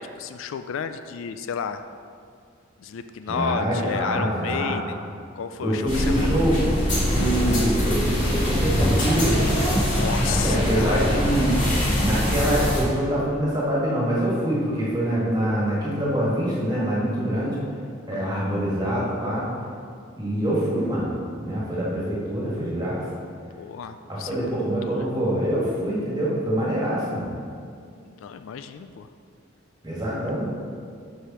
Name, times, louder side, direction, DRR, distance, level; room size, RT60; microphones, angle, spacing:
voice 1, 0.0-1.8 2.8-5.0 5.4-6.4 9.9-11.0 18.1-18.4 23.6-25.1 28.0-29.1, left 7 dB, 70° left, 9 dB, 0.3 m, -32 dB
voice 2, 3.3-4.8 5.6-6.6 7.0-9.4 10.2-11.6 12.0-17.6 18.1-19.5 20.2-21.1 21.4-23.0 24.1-27.3 29.8-30.5, equal, 20° right, -6 dB, 1.8 m, -25 dB
sound 1, 5.9-12.8, equal, 35° left, 2.0 m, -23 dB
6.4 x 4.8 x 6.2 m, 2.3 s
head